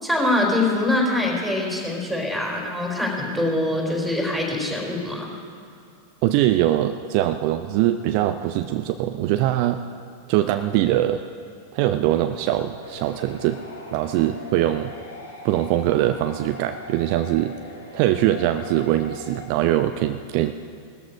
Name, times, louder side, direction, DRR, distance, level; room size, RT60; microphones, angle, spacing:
voice 1, 0.0-5.3, left 1 dB, ahead, -1 dB, 4.0 m, -24 dB
voice 2, 6.2-9.8 10.3-11.2 11.7-13.6 13.9-14.9 15.4-17.5 17.9-20.5, right 13 dB, 45° right, 9 dB, 0.5 m, -22 dB
sound 1, 12.8-19.5, left 2 dB, 75° left, 3.0 m, -40 dB
18.5 x 13.5 x 5.1 m, 2.5 s
figure-of-eight pair, 90°, 0 cm